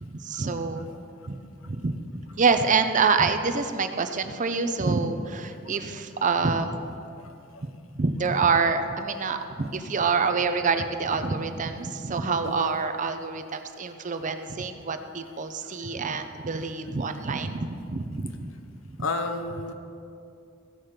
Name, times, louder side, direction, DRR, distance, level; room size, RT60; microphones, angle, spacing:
voice 1, 0.0-0.9 1.3-1.9 2.4-6.8 8.0-18.5, right 4 dB, 40° right, 8 dB, 0.6 m, -26 dB
voice 2, 7.2-7.6 12.4-12.7 19.0-19.7, left 3 dB, 80° left, 7 dB, 0.8 m, -32 dB
15.5 x 5.9 x 5.0 m, 2.5 s
head